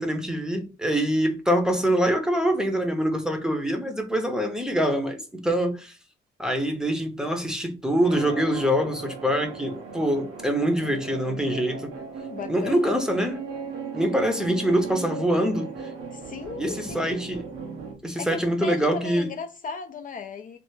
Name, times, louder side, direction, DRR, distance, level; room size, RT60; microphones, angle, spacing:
voice 1, 0.0-6.0 6.4-11.9 12.5-13.4 13.9-15.7 16.6-17.4 18.0-19.3, equal, 5° right, 0.7 m, -24 dB
sound 1, 8.0-17.9, right 4 dB, 90° right, 0.8 m, -37 dB
voice 2, 12.3-12.9 16.1-17.0 18.2-20.6, left 5 dB, 45° left, 0.4 m, -36 dB
3.2 x 2.0 x 3.1 m
cardioid pair, 90°, 20 cm